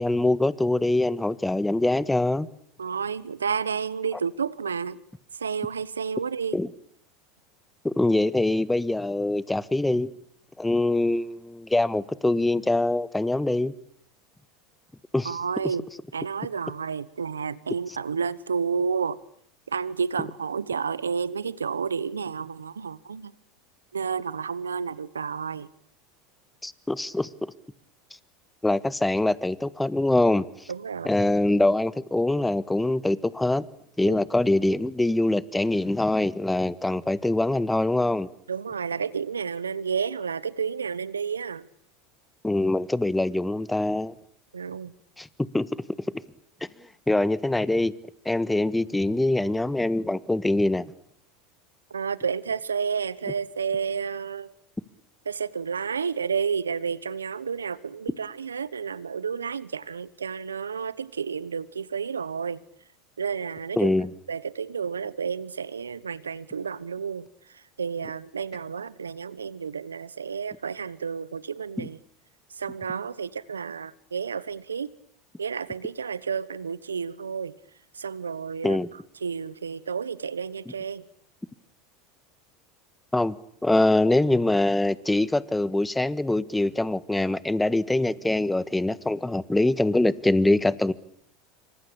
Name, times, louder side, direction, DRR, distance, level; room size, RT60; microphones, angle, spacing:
voice 1, 0.0-2.5 6.5-6.7 7.8-10.1 10.6-13.7 15.1-15.4 26.6-27.3 28.6-30.4 31.0-33.6 34.0-38.3 42.4-44.1 45.2-45.3 45.5-45.7 47.1-47.9 48.2-50.9 63.8-64.1 71.8-71.9 78.6-78.9 83.1-83.3 83.6-90.9, left 2 dB, 10° left, 1.5 m, -23 dB
voice 2, 2.8-5.0 5.3-6.6 15.2-15.9 16.1-19.2 19.7-23.3 23.9-25.7 30.7-31.3 34.1-34.2 38.5-41.7 44.5-44.9 51.9-54.5 55.2-62.6 63.2-63.9 64.3-72.0 72.5-74.9 75.4-77.5 77.9-78.8 79.2-81.1, right 6 dB, 90° right, 1.1 m, -31 dB
27.0 x 25.0 x 8.7 m
hypercardioid pair, 85°, 0 cm